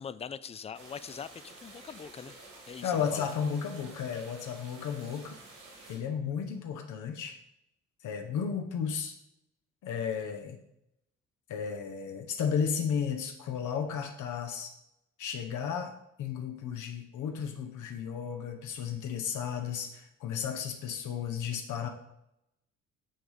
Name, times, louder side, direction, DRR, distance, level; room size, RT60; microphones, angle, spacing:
voice 1, 0.0-2.4 2.7-3.3, left 7 dB, 20° left, 16 dB, 0.4 m, -42 dB
sound 1, 0.7-6.0, right 2 dB, 80° right, 3.2 m, -51 dB
voice 2, 2.8-5.4 5.9-7.4 8.0-9.1 9.8-10.6 11.5-14.7 15.2-15.9 16.2-21.9, left 7 dB, 80° left, 4 dB, 1.0 m, -33 dB
9.1 x 3.5 x 5.6 m, 0.81 s
cardioid pair, 90°, 30 cm